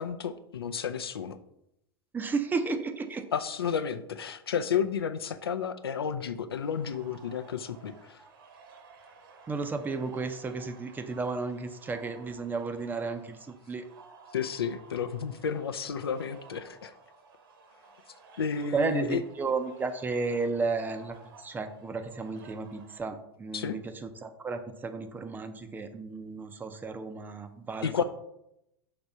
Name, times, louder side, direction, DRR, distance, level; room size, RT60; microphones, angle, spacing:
voice 1, 0.0-1.4 3.3-8.2 14.3-16.9 18.4-19.2 23.5-23.8 27.8-28.0, left 7 dB, 70° left, 10 dB, 0.5 m, -32 dB
voice 2, 2.1-3.3 9.5-13.8 18.7-28.0, right 4 dB, 15° right, 8 dB, 0.5 m, -33 dB
sound 1, 6.6-23.1, right 4 dB, 60° right, 1.1 m, -55 dB
5.9 x 3.4 x 5.3 m, 0.82 s
figure-of-eight pair, 90°, 13 cm